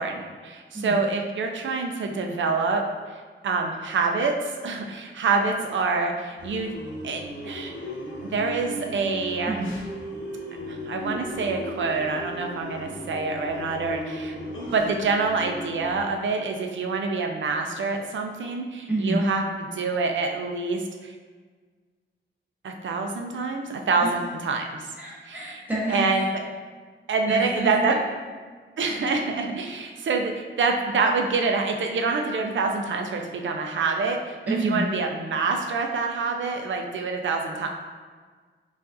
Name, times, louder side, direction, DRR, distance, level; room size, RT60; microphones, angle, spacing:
voice 1, 0.0-2.8 3.1-6.7 7.0-7.7 8.2-9.6 10.7-14.4 14.7-19.4 19.7-21.1 22.6-24.9 25.3-25.5 25.9-26.3 27.1-27.9 28.8-37.7, right 4 dB, 65° right, 3 dB, 0.4 m, -26 dB
sound 1, 6.4-16.0, equal, 70° left, 0.8 m, -36 dB
voice 2, 18.9-19.2 25.0-26.3 27.3-27.7 34.5-34.8, right 1 dB, 10° right, -7 dB, 0.9 m, -28 dB
4.7 x 2.5 x 2.5 m, 1.5 s
wide cardioid pair, 175°, 21 cm